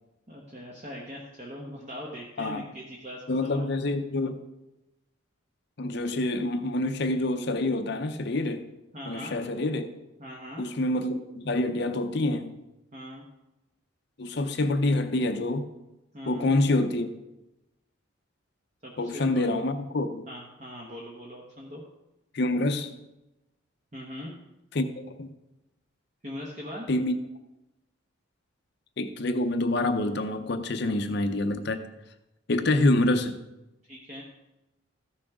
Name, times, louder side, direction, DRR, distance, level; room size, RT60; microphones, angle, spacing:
voice 1, 0.3-3.7 8.9-9.4 10.2-10.6 12.9-13.2 16.1-16.5 18.8-19.5 20.3-21.8 23.9-24.3 26.2-26.9 30.8-30.9 33.9-34.2, equal, 35° right, -3 dB, 1.1 m, -41 dB
voice 2, 3.3-4.4 5.8-8.7 9.1-9.9 10.6-12.5 14.2-15.7 16.3-17.1 19.0-20.2 22.3-22.9 24.7-25.3 26.9-27.1 29.0-31.8 32.5-33.4, left 2 dB, 55° left, 8 dB, 0.6 m, -26 dB
14.0 x 6.2 x 3.6 m, 0.97 s
head